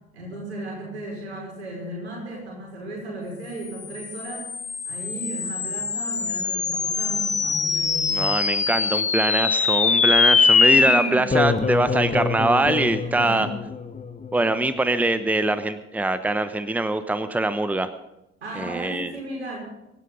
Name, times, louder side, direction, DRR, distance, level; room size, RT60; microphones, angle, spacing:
voice 1, 0.1-4.5 4.8-8.2 10.7-11.3 13.0-13.5 18.4-19.6, right 1 dB, 80° right, -2 dB, 5.6 m, -35 dB
sound 1, 3.8-14.5, left 5 dB, 20° left, 1.1 m, -23 dB
voice 2, 8.1-13.5 14.3-17.9 18.6-19.1, right 2 dB, 5° right, 13 dB, 0.9 m, -23 dB
24.5 x 12.0 x 3.9 m, 0.90 s
figure-of-eight pair, 50°, 32 cm